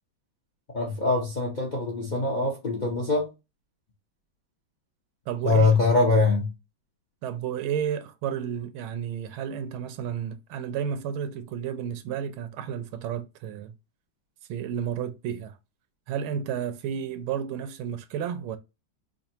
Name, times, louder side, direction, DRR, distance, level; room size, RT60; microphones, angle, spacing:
voice 1, 0.7-3.3 5.4-6.5, left 3 dB, 65° left, 0.4 m, -23 dB
voice 2, 5.3-5.7 7.2-13.7 14.5-15.6 16.1-18.6, right 8 dB, 90° right, 1.4 m, -32 dB
5.1 x 2.3 x 2.8 m
omnidirectional pair, 2.2 m